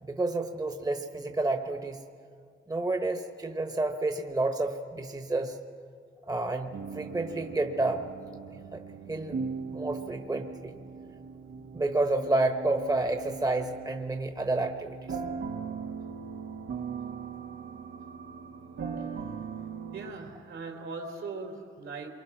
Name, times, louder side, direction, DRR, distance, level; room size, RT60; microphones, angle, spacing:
voice 1, 0.0-2.0 2.7-5.6 6.3-8.0 8.7-8.8 9.1-9.4 9.7-10.7 11.7-15.2, right 2 dB, 15° right, 6 dB, 1.2 m, -30 dB
sound 1, 6.7-20.1, right 5 dB, 90° right, 2.0 m, -39 dB
voice 2, 19.9-22.1, right 3 dB, 70° right, 3 dB, 3.7 m, -39 dB
27.5 x 23.5 x 6.1 m, 2.2 s
cardioid pair, 105°, 21 cm